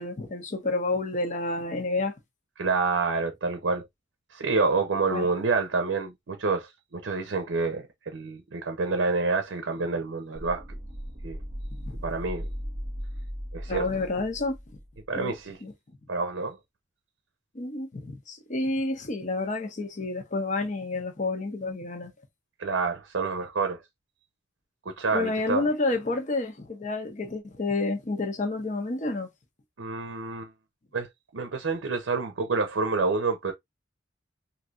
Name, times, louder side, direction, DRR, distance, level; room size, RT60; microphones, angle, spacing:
voice 1, 0.0-2.1 5.1-5.3 11.9-12.0 13.7-14.6 15.1-15.3 15.6-15.7 17.5-22.1 25.1-29.3, left 2 dB, 40° left, 0.7 m, -29 dB
voice 2, 2.6-3.9 4.3-10.6 11.2-11.4 12.0-12.5 13.5-13.9 15.1-15.6 16.1-16.6 22.6-23.8 24.9-25.6 29.8-30.5 30.9-31.1 31.3-33.5, right 4 dB, 80° right, 0.6 m, -28 dB
sound 1, 10.3-15.2, equal, 15° right, 0.6 m, -37 dB
3.2 x 2.7 x 2.4 m
head